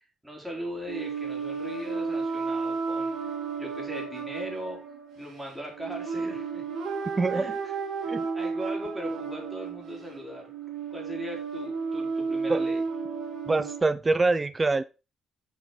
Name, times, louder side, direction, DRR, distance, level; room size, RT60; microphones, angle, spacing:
voice 1, 0.2-4.8 5.2-6.7 7.3-7.7 8.0-10.5 10.9-12.8, equal, 10° right, -1 dB, 3.9 m, -39 dB
sound 1, 0.9-13.8, right 5 dB, 80° right, 3.3 m, -33 dB
voice 2, 7.2-7.5 8.1-8.3 12.5-12.6 13.5-14.8, right 3 dB, 25° right, 15 dB, 0.4 m, -25 dB
7.0 x 5.8 x 3.9 m, 0.30 s
cardioid pair, 90°, 0 cm